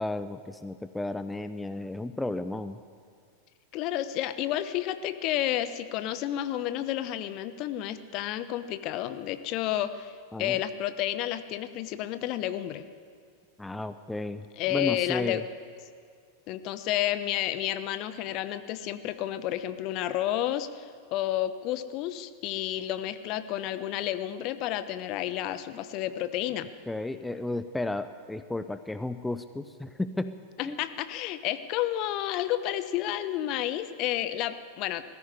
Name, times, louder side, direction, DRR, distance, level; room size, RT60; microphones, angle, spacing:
voice 1, 0.0-2.8 10.3-10.6 13.6-15.4 26.9-30.8, left 2 dB, 5° left, 12 dB, 0.6 m, -33 dB
voice 2, 3.7-12.8 14.6-15.4 16.5-26.7 30.8-35.0, left 12 dB, 40° left, 12 dB, 0.9 m, -31 dB
19.0 x 14.5 x 9.8 m, 2.2 s
figure-of-eight pair, 90°, 0 cm